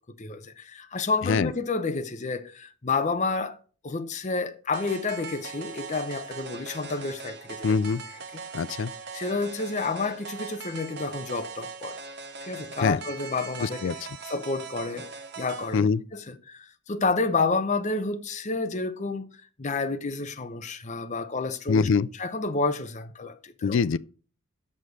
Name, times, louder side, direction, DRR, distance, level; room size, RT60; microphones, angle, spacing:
voice 1, 0.2-3.6 3.8-7.7 9.1-12.0 12.4-14.0 14.2-15.1 15.4-19.3 19.6-21.9 22.2-23.8, left 3 dB, 35° left, 0.7 m, -30 dB
sound 1, 4.7-15.8, right 4 dB, 50° right, 1.0 m, -40 dB
voice 2, 7.6-8.0 8.5-8.9 12.8-13.0 13.6-13.9 15.7-16.0 21.7-22.1 23.6-24.0, left 5 dB, 55° left, 0.3 m, -23 dB
7.4 x 6.6 x 6.2 m
head